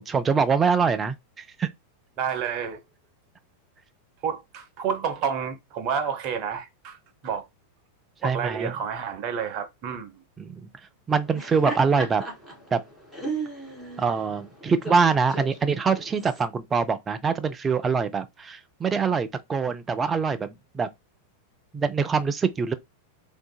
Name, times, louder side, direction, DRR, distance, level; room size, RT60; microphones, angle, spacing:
voice 1, 0.0-1.7 8.2-8.7 10.4-10.7 11.1-12.2 12.7-12.8 14.0-20.9 21.7-22.7, right 5 dB, 20° right, 0.3 m, -24 dB
voice 2, 2.2-2.8 4.2-7.0 7.2-7.5 8.2-10.1, right 7 dB, 40° right, 0.7 m, -29 dB
Laughter, 11.2-16.4, right 2 dB, 5° right, 1.5 m, -36 dB
3.6 x 2.7 x 2.3 m
figure-of-eight pair, 90°, 0 cm